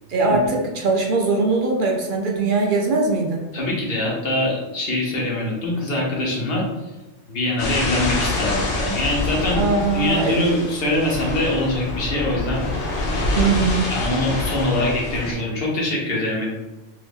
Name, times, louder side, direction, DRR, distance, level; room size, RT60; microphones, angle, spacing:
voice 1, 0.1-3.5 9.4-10.6 13.4-13.9, right 3 dB, 60° right, 0 dB, 0.6 m, -21 dB
voice 2, 3.5-6.7 7.3-9.6 9.9-12.6 13.9-16.5, left 1 dB, 60° left, -3 dB, 1.0 m, -23 dB
sound 1, 7.6-15.3, left 2 dB, 85° left, 1.0 m, -26 dB
2.7 x 2.5 x 3.4 m, 1.1 s
omnidirectional pair, 1.2 m